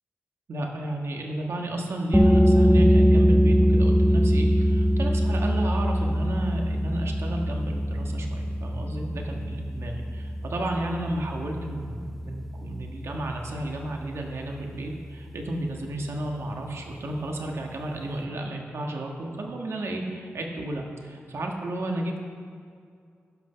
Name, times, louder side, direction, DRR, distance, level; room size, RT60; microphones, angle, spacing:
voice 1, 0.5-22.2, right 1 dB, 75° right, 1 dB, 1.5 m, -32 dB
sound 1, 2.1-13.5, equal, ahead, 0.8 m, -22 dB
15.5 x 6.1 x 5.7 m, 2.3 s
wide cardioid pair, 95°, 5 cm